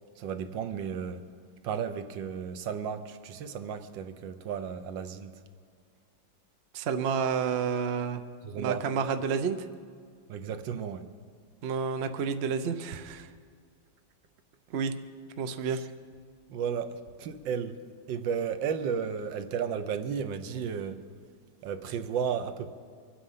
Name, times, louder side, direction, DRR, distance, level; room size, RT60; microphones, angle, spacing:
voice 1, 0.2-1.3 1.6-5.3 8.4-8.9 10.3-11.1 15.7-15.8 16.5-17.8 18.1-21.1 21.6-22.7, right 7 dB, 80° right, 1.5 m, -33 dB
voice 2, 6.7-8.2 8.6-9.7 11.6-13.3 14.7-14.9 15.4-15.8, right 6 dB, 60° right, 0.6 m, -30 dB
24.0 x 8.8 x 5.6 m
omnidirectional pair, 2.0 m